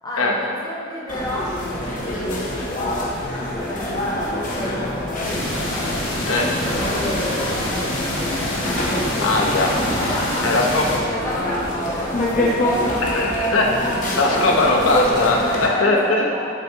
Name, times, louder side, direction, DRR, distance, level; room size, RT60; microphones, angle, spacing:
voice 1, 0.0-5.5 7.0-8.6 9.4-9.5 10.0-13.1 14.3-14.5 15.1-16.5, left 1 dB, 20° left, -6 dB, 1.0 m, -32 dB
sound 1, 1.1-15.7, left 1 dB, 40° left, 0.9 m, -25 dB
sound 2, 5.2-11.0, left 1 dB, 75° left, 1.2 m, -27 dB
voice 2, 9.2-9.7 10.4-10.8 13.0-13.7 14.2-16.2, left 2 dB, 90° left, -1 dB, 0.8 m, -19 dB
5.7 x 5.3 x 3.5 m, 2.4 s
head